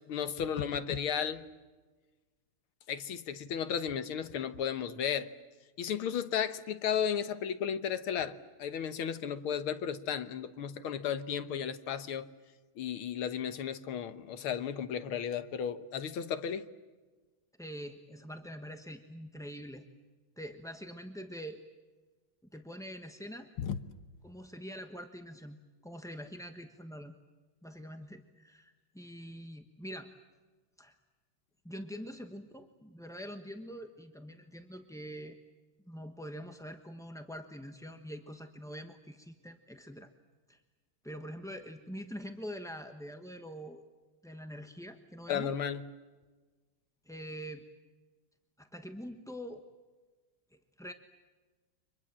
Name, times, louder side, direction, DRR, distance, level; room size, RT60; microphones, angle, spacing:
voice 1, 0.1-1.4 2.9-5.3 5.8-12.3 12.8-16.7 23.6-23.8 45.3-45.8, left 8 dB, 80° left, 11 dB, 2.0 m, -34 dB
voice 2, 17.6-19.8 20.4-21.6 22.5-23.5 24.2-27.1 27.6-30.1 30.8-31.0 31.6-35.4 35.9-40.1 40.5-40.6 41.0-43.8 44.2-45.6 47.0-47.6 48.6-49.7 50.5-50.9, equal, 5° left, 5 dB, 0.6 m, -44 dB
30.0 x 25.0 x 7.5 m, 1.3 s
omnidirectional pair, 2.3 m